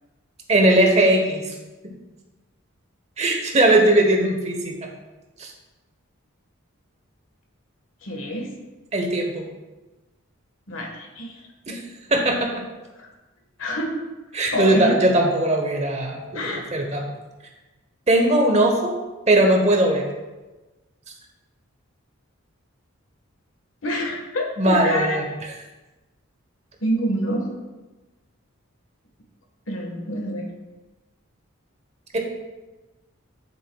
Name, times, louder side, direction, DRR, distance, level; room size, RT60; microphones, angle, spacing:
voice 1, 0.5-1.5 3.2-4.7 5.4-5.5 8.9-9.4 11.7-11.8 12.1-12.6 14.3-17.1 18.1-18.9 19.3-20.1 24.6-25.2 32.1-32.2, right 1 dB, 30° right, 2 dB, 1.0 m, -19 dB
voice 2, 8.0-8.5 10.7-11.4 12.9-13.1 13.6-14.0 14.5-14.9 16.3-16.9 23.8-25.2 26.8-27.5 29.7-30.5, equal, 70° left, 1 dB, 1.5 m, -27 dB
9.6 x 7.4 x 2.3 m, 1.2 s
head